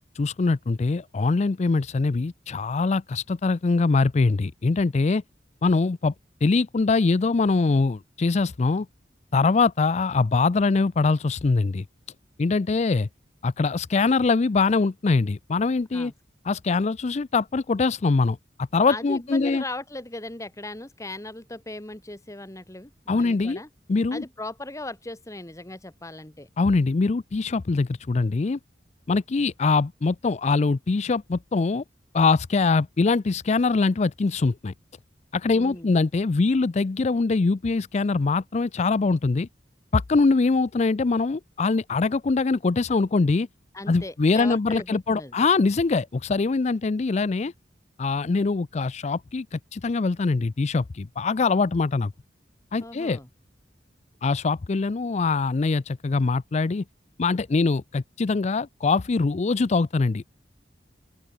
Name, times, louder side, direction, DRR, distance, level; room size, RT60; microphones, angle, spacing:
voice 1, 0.1-5.2 5.6-6.1 6.4-8.9 9.3-11.9 12.4-13.1 13.4-16.1 16.5-18.4 18.7-19.6 23.1-23.6 23.9-24.2 26.6-28.6 29.1-31.8 32.1-34.7 35.3-39.5 39.9-43.5 43.9-47.5 48.0-52.1 52.7-53.2 54.2-56.8 57.2-60.2, left 3 dB, 40° left, 0.4 m, -23 dB
voice 2, 18.9-23.7 24.1-26.5 35.5-35.9 43.7-45.4 52.8-53.3, left 2 dB, 20° left, 1.7 m, -38 dB
open air
head